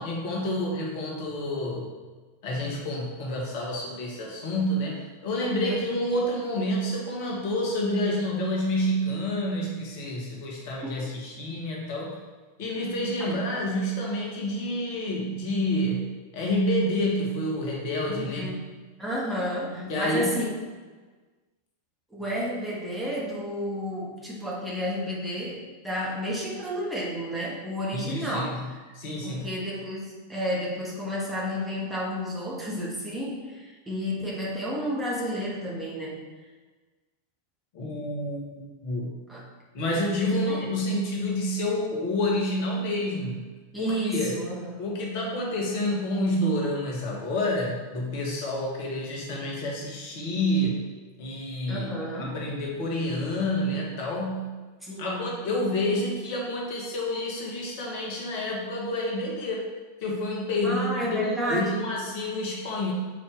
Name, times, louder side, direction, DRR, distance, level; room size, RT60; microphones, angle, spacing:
voice 1, 0.0-1.9 2.4-12.2 12.6-18.5 19.9-20.4 27.9-28.7 28.9-29.5 37.7-39.2 39.7-43.4 43.8-44.3 44.8-50.8 51.2-51.9 52.2-54.6 55.0-59.7 60.0-62.9, left 1 dB, 50° left, -2 dB, 1.3 m, -28 dB
voice 2, 18.1-18.6 19.0-20.5 22.1-28.8 29.2-36.2 39.3-39.4 40.4-40.7 43.7-44.7 51.7-52.4 54.8-55.3 60.6-61.8, equal, 5° right, -6 dB, 1.5 m, -31 dB
6.3 x 4.3 x 3.6 m, 1.3 s
figure-of-eight pair, 90°, 0 cm